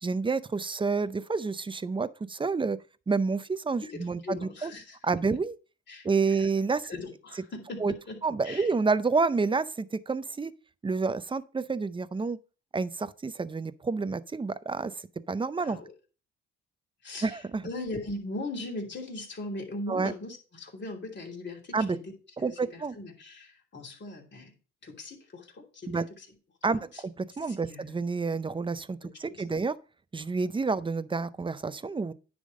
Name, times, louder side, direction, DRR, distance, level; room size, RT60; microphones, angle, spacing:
voice 1, 0.0-2.8 3.1-4.7 5.0-5.6 6.0-6.9 7.8-7.9 8.2-10.5 10.8-12.4 12.7-14.9 15.3-15.8 17.2-17.6 19.9-20.1 21.7-22.0 22.4-23.0 25.9-26.0 26.6-29.7 30.1-32.1, right 4 dB, 15° right, 0.5 m, -29 dB
voice 2, 3.8-5.0 5.9-6.1 6.9-8.2 8.4-8.7 15.6-15.9 17.0-17.4 17.6-21.6 21.9-22.0 22.4-24.5 24.8-26.0 26.7-27.0 27.5-27.9 29.0-29.6, left 2 dB, 35° left, 3.0 m, -39 dB
9.9 x 3.6 x 6.3 m
cardioid pair, 90°, 30 cm